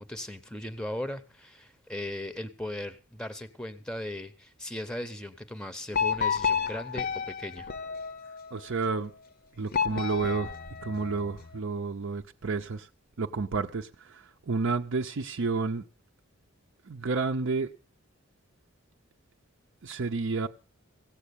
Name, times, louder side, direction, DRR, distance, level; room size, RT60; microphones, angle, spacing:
voice 1, 0.0-7.7, left 1 dB, 5° left, 0.7 m, -38 dB
sound 1, 5.9-8.6 9.7-11.5, left 6 dB, 45° left, 0.7 m, -31 dB
voice 2, 8.5-9.1 9.6-10.5 10.8-12.9 13.2-15.8 16.9-17.7 19.8-20.5, right 4 dB, 65° right, 0.6 m, -30 dB
16.5 x 7.2 x 8.4 m
head